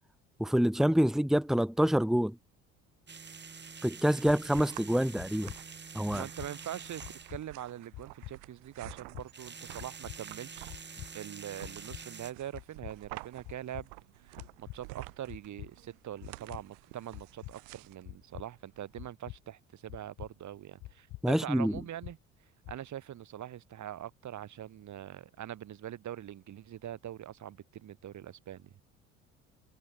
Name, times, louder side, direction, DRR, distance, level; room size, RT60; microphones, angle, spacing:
voice 1, 0.4-2.4 3.8-5.5 5.9-6.2 21.2-21.8, equal, ahead, 1.8 m, -26 dB
sound 1, 3.1-7.4 9.2-12.3, right 5 dB, 25° right, 4.3 m, -47 dB
sound 2, 3.8-19.0, right 32 dB, 65° right, 3.9 m, -51 dB
sound 3, 4.4-4.7 5.2-5.6 6.1-6.5 7.0-7.4 7.9-8.3 8.8-9.3 9.8-10.2 10.7-11.1 11.6-12.0 12.5-12.9 13.4-13.9 14.4-14.8 15.3-15.7 16.2-16.6 17.1-17.5 18.0-18.5 19.0-19.4 19.9-20.3 20.8-21.2 21.7-22.1 22.6-22.8, left 18 dB, 55° left, 3.8 m, -45 dB
voice 2, 6.1-7.0 7.3-10.8 11.1-13.9 14.2-22.2 22.7-28.7, right 11 dB, 45° right, 3.1 m, -43 dB
figure-of-eight pair, 55°, 39 cm